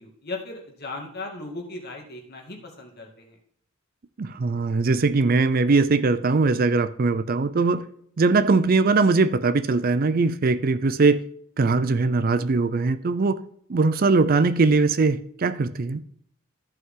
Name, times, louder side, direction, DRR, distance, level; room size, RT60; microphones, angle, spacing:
voice 1, 0.0-3.4, left 2 dB, 50° left, 2.3 m, -37 dB
voice 2, 4.2-7.9 8.2-11.2 11.6-13.4 13.7-16.0, right 3 dB, 45° right, 0.5 m, -21 dB
14.0 x 5.6 x 3.8 m
head